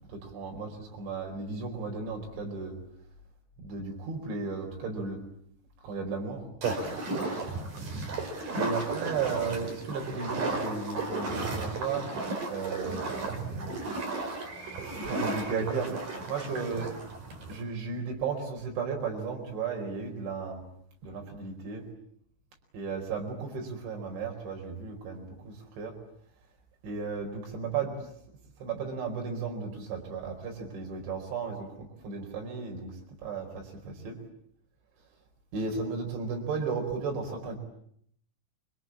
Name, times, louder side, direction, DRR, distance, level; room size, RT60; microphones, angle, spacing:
voice 1, 0.1-2.8 3.6-5.2 5.8-6.5 6.8-7.4 8.6-12.1 12.5-13.8 14.8-15.9 16.3-16.9 17.5-20.6 21.0-21.9 22.7-26.0 26.8-28.0 28.6-31.7 32.0-32.9 33.2-34.2 35.5-37.6, right 5 dB, 70° right, 1 dB, 7.1 m, -34 dB
sound 1, 6.6-17.6, right 3 dB, 45° right, 5.7 m, -34 dB
28.5 x 24.0 x 8.6 m, 0.69 s
omnidirectional pair, 5.5 m